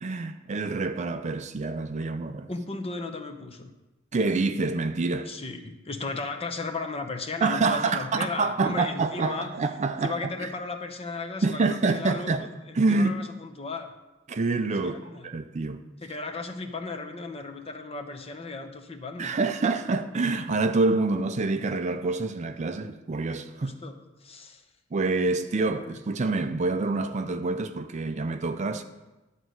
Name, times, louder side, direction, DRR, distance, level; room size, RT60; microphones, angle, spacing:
voice 1, 0.0-2.5 4.1-5.3 7.4-10.1 10.4-10.5 11.4-12.4 12.7-13.1 14.3-15.8 19.2-23.8 24.9-28.8, right 3 dB, 35° right, 0.4 m, -27 dB
voice 2, 2.5-3.7 5.3-9.5 10.0-12.5 12.9-13.9 14.8-15.3 16.0-19.3 23.6-24.6 25.8-25.9, left 3 dB, 30° left, 0.8 m, -35 dB
11.0 x 4.1 x 7.7 m
head